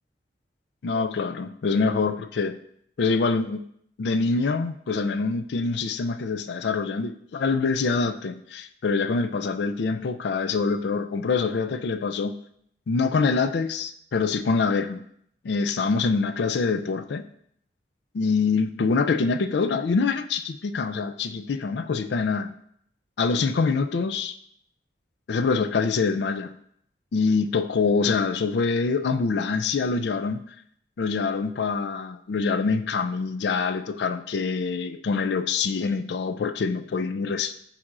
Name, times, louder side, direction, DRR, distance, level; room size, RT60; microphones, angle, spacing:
voice 1, 0.8-2.6 3.0-3.6 4.0-12.3 12.9-15.0 15.4-17.2 18.1-22.5 23.2-24.4 25.3-26.5 27.1-30.5 31.0-37.6, left 4 dB, 70° left, 10 dB, 0.4 m, -25 dB
9.1 x 4.2 x 2.5 m, 0.67 s
head